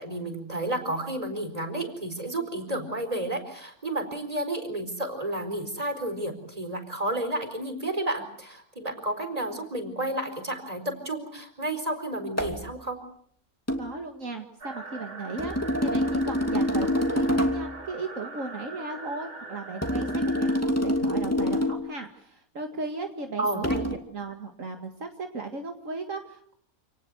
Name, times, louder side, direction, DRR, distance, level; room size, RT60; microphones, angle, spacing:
voice 1, 0.0-13.0 23.4-23.8, right 1 dB, 25° right, 7 dB, 4.5 m, -31 dB
sound 1, 12.4-12.6 13.7-13.9 15.4-17.7 19.8-21.9 23.6-23.9, left 1 dB, 10° left, 2.7 m, -26 dB
voice 2, 13.8-15.6 15.8-26.5, right 3 dB, 60° right, 4 dB, 2.3 m, -36 dB
sound 2, 14.6-20.6, right 3 dB, 40° right, 2.3 m, -42 dB
28.5 x 19.0 x 8.0 m, 0.66 s
omnidirectional pair, 1.5 m